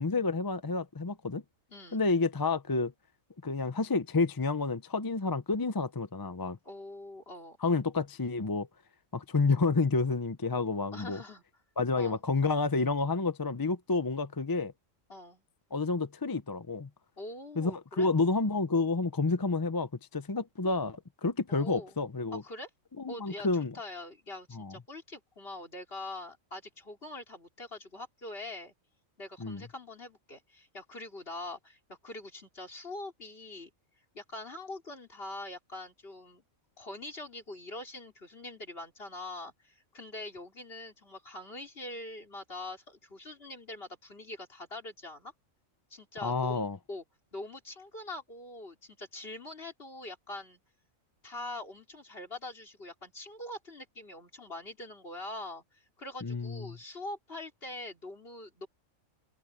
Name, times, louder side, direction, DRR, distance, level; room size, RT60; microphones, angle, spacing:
voice 1, 0.0-1.4 1.9-2.9 3.4-6.6 7.6-8.7 9.1-11.2 11.8-14.7 15.7-16.9 17.6-22.4 23.0-23.7 24.5-24.7 29.4-29.6 46.2-46.8 56.2-56.8, left 3 dB, 25° left, 0.5 m, -29 dB
voice 2, 1.7-2.0 6.6-7.6 10.9-11.4 11.9-12.2 15.1-15.4 17.2-18.1 21.5-22.0 22.3-22.7 23.1-23.5 23.7-28.7 29.2-33.7 34.1-36.4 36.8-45.3 45.9-47.0 47.3-50.6 51.2-58.7, left 2 dB, 45° left, 4.3 m, -43 dB
omnidirectional pair, 1.4 m